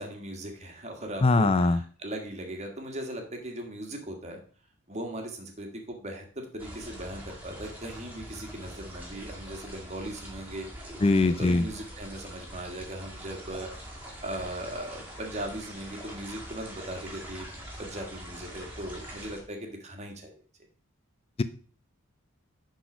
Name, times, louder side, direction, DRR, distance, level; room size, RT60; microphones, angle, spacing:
voice 1, 0.0-4.4 4.9-10.7 11.1-13.7 14.2-17.5 17.8-20.3, right 1 dB, 30° right, 3 dB, 1.6 m, -38 dB
voice 2, 1.2-1.8 11.0-11.6, left 3 dB, 25° left, 12 dB, 0.4 m, -21 dB
sound 1, 6.6-19.4, equal, 10° right, 2.0 m, -44 dB
10.5 x 4.2 x 5.0 m, 0.42 s
head